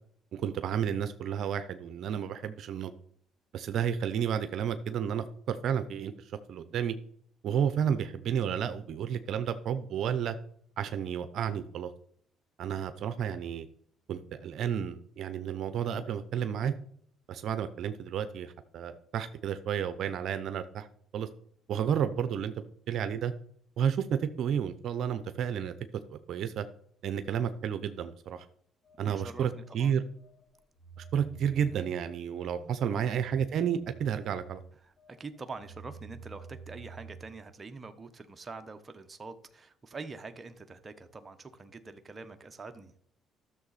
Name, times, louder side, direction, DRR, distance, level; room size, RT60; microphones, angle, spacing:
voice 1, 0.3-2.9 3.5-6.9 7.4-10.4 10.8-11.9 12.6-13.7 14.1-16.7 17.3-20.9 21.1-21.3 21.7-23.3 23.8-25.7 26.1-26.7 27.0-28.5 29.0-30.0 31.1-34.6, right 8 dB, 65° right, 10 dB, 0.7 m, -31 dB
Telephone, 28.8-37.5, right 5 dB, 20° left, 4.7 m, -50 dB
voice 2, 29.0-30.0 32.6-33.2 34.8-42.9, right 3 dB, 25° right, 7 dB, 1.0 m, -45 dB
12.5 x 6.9 x 4.2 m, 0.63 s
cardioid pair, 95°, 0 cm